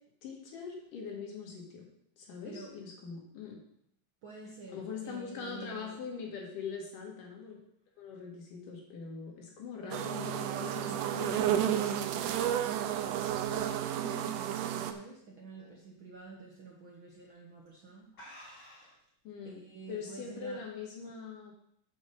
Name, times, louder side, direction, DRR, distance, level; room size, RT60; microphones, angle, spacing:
voice 1, 0.2-1.9 2.2-3.6 4.7-7.6 8.0-12.2 19.3-19.6 19.9-21.5, left 5 dB, 80° left, -1 dB, 3.4 m, -42 dB
voice 2, 4.2-6.0 9.8-11.0 13.4-18.1 19.4-20.6, right 3 dB, 60° right, -2 dB, 1.4 m, -47 dB
sound 1, 9.9-14.9, right 11 dB, 85° right, 2.1 m, -32 dB
sound 2, 14.5-15.1 15.5-15.8 16.2-16.3 17.1-17.4 17.7-17.8 18.1-19.1, equal, 40° left, 3.9 m, -54 dB
7.6 x 5.3 x 6.7 m, 0.72 s
omnidirectional pair, 3.7 m